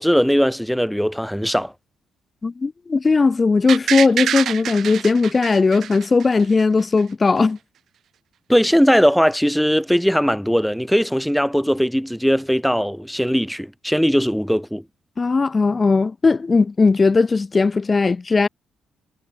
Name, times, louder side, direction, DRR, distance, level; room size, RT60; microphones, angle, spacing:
voice 1, 0.0-1.7 8.5-14.8, equal, ahead, 5.1 m, -19 dB
voice 2, 2.4-7.6 15.2-18.5, left 4 dB, 30° left, 2.4 m, -18 dB
sound 1, 3.7-6.6 7.0-7.1, right 9 dB, 65° right, 4.1 m, -26 dB
cardioid pair, 90°, 0 cm